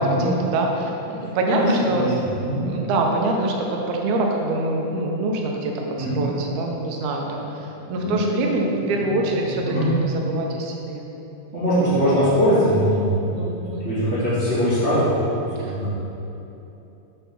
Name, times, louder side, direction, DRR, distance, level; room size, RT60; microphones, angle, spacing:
voice 1, 0.0-2.1 2.7-11.1 13.3-13.8 15.6-15.7, right 2 dB, 80° right, 0 dB, 2.1 m, -25 dB
voice 2, 1.2-2.1 2.4-2.6 6.0-6.2 7.8-8.3 9.0-9.9 11.5-13.1 13.5-15.9, equal, 35° right, -13 dB, 1.1 m, -22 dB
5.5 x 4.1 x 5.8 m, 3.0 s
omnidirectional pair, 3.3 m